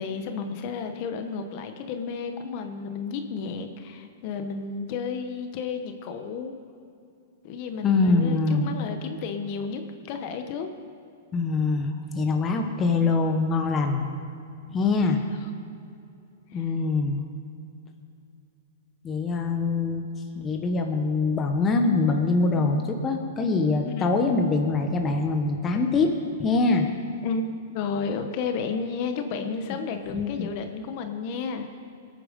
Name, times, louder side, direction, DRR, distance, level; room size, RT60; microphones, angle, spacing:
voice 1, 0.0-6.5 7.4-10.7 14.8-14.9 15.4-15.5 16.5-16.7 23.8-24.1 27.2-31.8, left 5 dB, 45° left, 6 dB, 1.1 m, -32 dB
voice 2, 7.8-8.7 11.3-14.1 14.7-15.2 16.5-17.2 19.0-20.0 20.3-26.1 26.4-26.9 30.1-30.5, left 3 dB, 20° left, 4 dB, 1.1 m, -24 dB
21.0 x 9.1 x 5.3 m, 2.5 s
hypercardioid pair, 150°, 0 cm